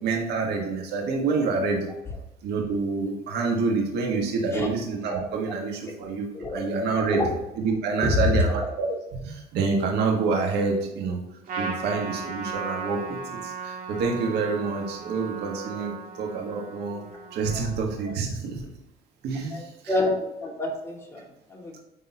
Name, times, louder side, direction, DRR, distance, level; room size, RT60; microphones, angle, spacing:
voice 1, 0.0-1.9 2.4-7.2 7.6-9.0 9.2-11.2 11.5-17.0 17.3-18.6 19.2-19.7, right 4 dB, 80° right, 0 dB, 1.6 m, -27 dB
voice 2, 7.0-7.3 8.0-8.1 17.5-17.7 19.5-20.1 20.4-21.7, left 1 dB, 15° left, -3 dB, 2.3 m, -29 dB
Trumpet, 11.5-18.2, right 5 dB, 55° right, 1.9 m, -36 dB
9.9 x 3.8 x 2.9 m, 0.89 s
cardioid pair, 110°, 17 cm